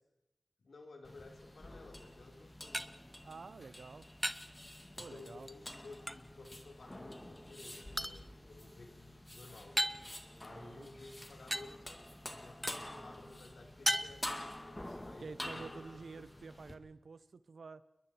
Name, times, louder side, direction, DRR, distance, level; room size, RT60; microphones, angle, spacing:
voice 1, 0.6-2.9 4.9-9.8 10.4-16.3, left 3 dB, 85° left, 3 dB, 3.4 m, -55 dB
sound 1, 1.0-16.7, left 1 dB, 20° left, 2.1 m, -48 dB
sound 2, 2.1-16.4, equal, ahead, 0.8 m, -43 dB
voice 2, 3.2-4.1 5.0-5.5 10.5-10.9 15.2-17.8, right 4 dB, 80° right, 15 dB, 0.8 m, -49 dB
29.0 x 21.5 x 4.5 m, 0.92 s
wide cardioid pair, 85°, 0 cm